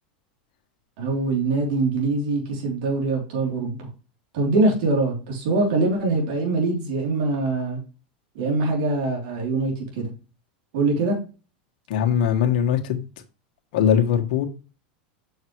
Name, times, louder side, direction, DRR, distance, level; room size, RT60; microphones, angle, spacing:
voice 1, 1.0-3.8 4.3-7.8 8.3-10.1 10.7-11.2, right 3 dB, 65° right, 3.1 m, -23 dB
voice 2, 11.9-13.0 13.7-14.5, left 8 dB, 65° left, 1.6 m, -21 dB
7.2 x 6.5 x 3.1 m
supercardioid pair, 125°, 5 cm